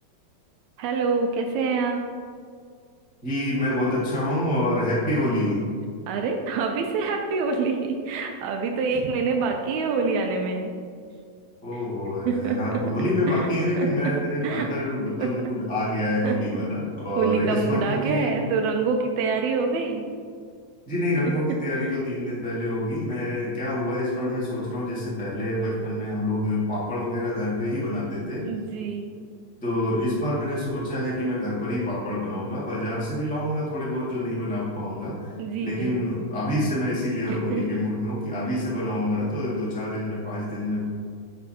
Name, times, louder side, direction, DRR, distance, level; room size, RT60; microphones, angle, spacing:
voice 1, 0.8-2.0 6.1-10.7 11.7-11.8 12.3-12.8 13.3-13.5 13.8-14.1 14.4-14.7 15.2-15.3 16.2-16.4 17.2-20.1 28.4-29.1 35.4-36.0 37.3-37.7, right 4 dB, 80° right, 3 dB, 1.7 m, -26 dB
voice 2, 3.2-5.6 8.9-9.0 11.6-18.4 20.8-28.5 29.6-35.3 35.6-40.8, left 1 dB, 5° left, -7 dB, 0.6 m, -27 dB
10.5 x 5.4 x 2.8 m, 2.1 s
omnidirectional pair, 3.7 m